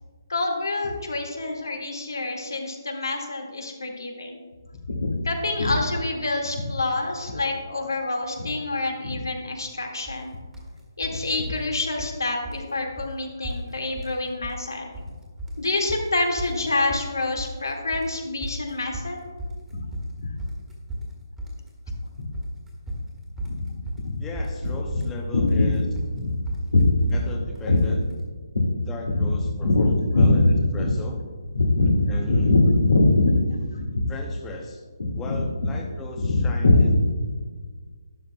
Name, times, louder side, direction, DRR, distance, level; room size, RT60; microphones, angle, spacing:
voice 1, 0.3-4.4 4.9-10.3 11.0-14.9 15.6-19.2 19.7-19.8 20.2-20.3 22.2-22.3 23.4-23.6 24.0-24.2 25.3-25.8 26.2-26.4 26.7-26.8 27.7-27.8 28.5-28.7 29.2-29.3 29.6-29.9 30.1-30.9 31.5-33.4 33.7-34.0 35.0-35.4 36.2-37.0, left 2 dB, 75° left, 1 dB, 1.9 m, -24 dB
sound 1, 10.1-10.2 10.5-11.2 11.5-12.2 12.4-12.7 13.0-13.1 13.4-14.2 14.4-15.1 15.4-28.2, equal, 5° right, 1.6 m, -35 dB
voice 2, 24.2-25.8 27.1-28.0 28.9-31.2 32.1-32.6 34.1-34.8 35.2-37.0, left 2 dB, 10° left, 1 dB, 0.8 m, -37 dB
12.0 x 10.0 x 2.3 m, 1.5 s
figure-of-eight pair, 145°, 2 cm